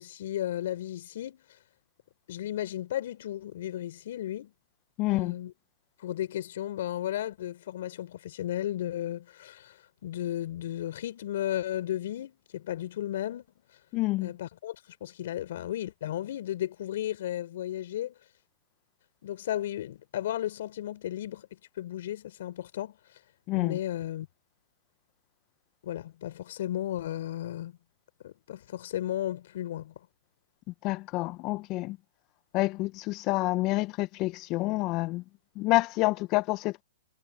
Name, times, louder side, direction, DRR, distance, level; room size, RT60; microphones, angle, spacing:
voice 1, 0.0-1.4 2.3-4.5 5.1-5.5 6.0-9.8 10.0-13.5 14.2-18.2 19.2-21.5 21.8-23.0 23.5-24.3 25.8-27.8 28.2-29.9, left 12 dB, 60° left, 5.1 m, -34 dB
voice 2, 5.0-5.3 13.9-14.3 23.5-23.8 30.8-32.0 32.5-35.2 35.6-36.8, left 21 dB, 35° left, 0.7 m, -28 dB
hypercardioid pair, 125°, 0 cm